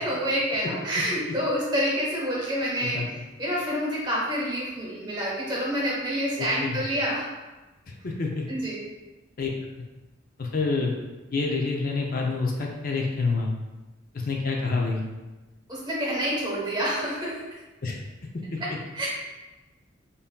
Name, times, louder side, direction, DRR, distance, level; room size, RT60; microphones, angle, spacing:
voice 1, 0.0-3.0 3.4-7.3 8.5-8.8 15.7-17.4 18.6-19.1, equal, 20° right, -5 dB, 1.0 m, -28 dB
voice 2, 6.4-6.8 7.9-8.4 9.4-9.5 10.4-10.9 11.3-13.5 14.1-15.0 17.8-18.0 18.5-18.6, left 4 dB, 45° left, 0 dB, 0.4 m, -27 dB
5.3 x 2.7 x 2.2 m, 1.1 s
head